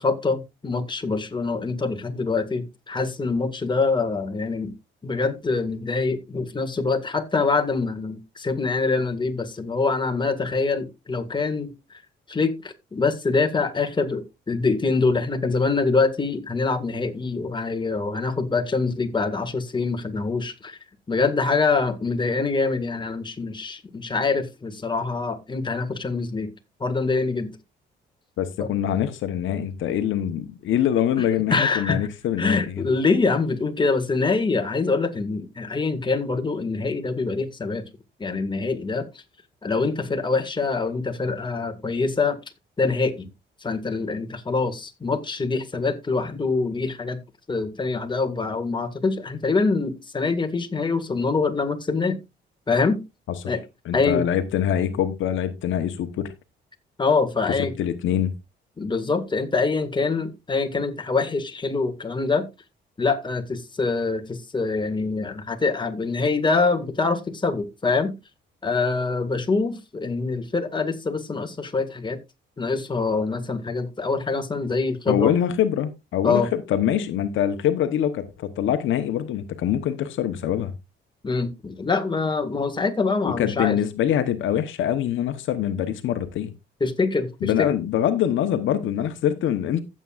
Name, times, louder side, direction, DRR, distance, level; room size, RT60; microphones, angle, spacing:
voice 1, 0.0-4.7 5.0-11.7 12.3-20.8 21.1-26.5 26.8-27.5 28.6-28.7 31.2-32.1 32.4-37.8 38.2-39.1 39.6-42.4 42.8-43.3 43.6-47.2 47.5-52.2 52.7-53.0 53.5-53.6 53.9-54.2 57.0-57.7 58.8-62.5 63.0-68.1 68.6-72.2 72.6-75.3 76.2-76.5 81.2-83.8 86.8-87.7, left 4 dB, 25° left, 1.9 m, -24 dB
voice 2, 28.4-32.8 53.4-53.5 53.8-56.3 57.8-58.3 75.1-80.7 83.2-86.5 87.4-89.8, left 10 dB, 75° left, 1.0 m, -24 dB
15.0 x 7.6 x 2.5 m
cardioid pair, 90°, 20 cm